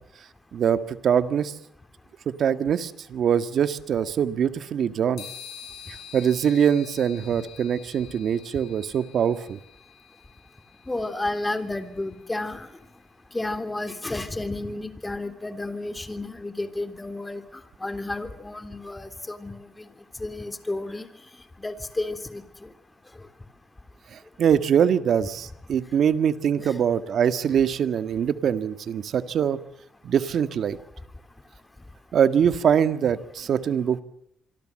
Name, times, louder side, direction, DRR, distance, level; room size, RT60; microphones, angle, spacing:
voice 1, 0.5-1.5 2.3-5.2 6.1-9.6 24.1-29.6 30.0-30.8 32.1-34.0, right 8 dB, 60° right, 11 dB, 1.8 m, -23 dB
sound 1, 5.2-12.8, left 8 dB, 75° left, 7.1 m, -47 dB
voice 2, 10.9-12.7 13.3-17.4 17.8-19.9 20.2-21.1 21.6-22.7 26.6-26.8, left 2 dB, 15° left, 9 dB, 3.4 m, -32 dB
26.5 x 24.0 x 7.7 m, 0.70 s
cardioid pair, 90°, 0 cm